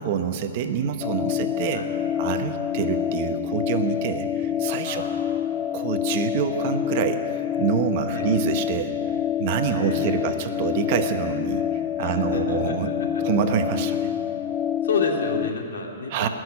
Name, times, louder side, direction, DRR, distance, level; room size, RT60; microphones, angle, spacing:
voice 1, 0.0-1.8 2.2-5.0 5.7-9.0 9.4-12.9 13.2-14.1 16.1-16.3, right 7 dB, 40° right, 7 dB, 1.0 m, -26 dB
sound 1, 1.0-15.5, left 10 dB, 15° left, 0.3 m, -27 dB
voice 2, 4.8-5.4 8.1-8.3 9.7-10.4 12.0-13.2 14.8-16.3, left 4 dB, 80° left, 1 dB, 2.5 m, -30 dB
18.5 x 6.5 x 9.8 m, 2.7 s
hypercardioid pair, 150°, 0 cm